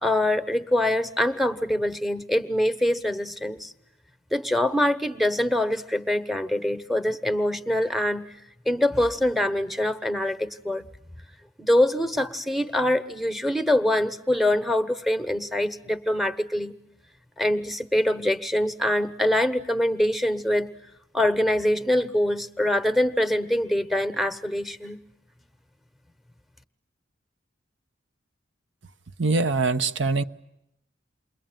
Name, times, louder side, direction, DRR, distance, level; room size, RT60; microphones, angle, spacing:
voice 1, 0.0-3.7 4.3-8.2 8.7-10.9 11.6-16.7 17.4-20.7 21.1-25.0, left 1 dB, ahead, 11 dB, 1.0 m, -24 dB
voice 2, 29.2-30.2, right 3 dB, 80° right, 11 dB, 1.0 m, -23 dB
29.0 x 22.5 x 9.1 m, 0.83 s
head